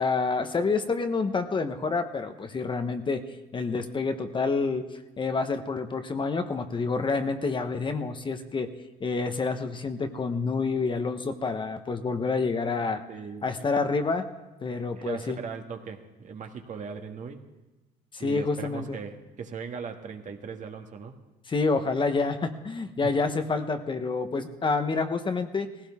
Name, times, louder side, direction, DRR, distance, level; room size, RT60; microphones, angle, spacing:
voice 1, 0.0-3.2 3.5-8.7 9.0-13.0 13.4-14.3 14.6-15.4 18.1-19.0 21.5-25.7, left 4 dB, 30° left, 7 dB, 1.1 m, -28 dB
voice 2, 13.1-13.4 14.9-17.4 18.2-21.2 23.0-23.2, right 5 dB, 45° right, 4 dB, 1.6 m, -39 dB
18.0 x 16.0 x 3.6 m, 1.1 s
cardioid pair, 110°, 17 cm